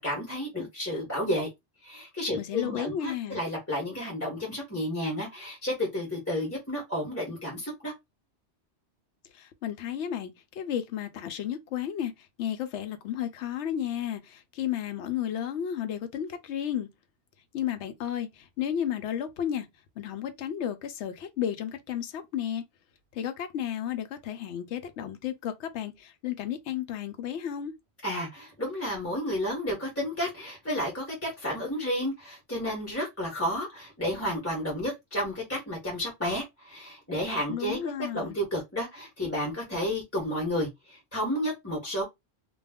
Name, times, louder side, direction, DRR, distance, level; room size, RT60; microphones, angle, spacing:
voice 1, 0.0-1.5 1.8-7.9 28.0-37.8 38.1-42.0, equal, 15° left, 1.0 m, -31 dB
voice 2, 2.4-3.4 9.3-16.9 17.5-19.7 20.0-22.6 23.1-27.7 37.5-38.4, left 10 dB, 90° left, 0.9 m, -33 dB
2.3 x 2.3 x 3.4 m
omnidirectional pair, 1.1 m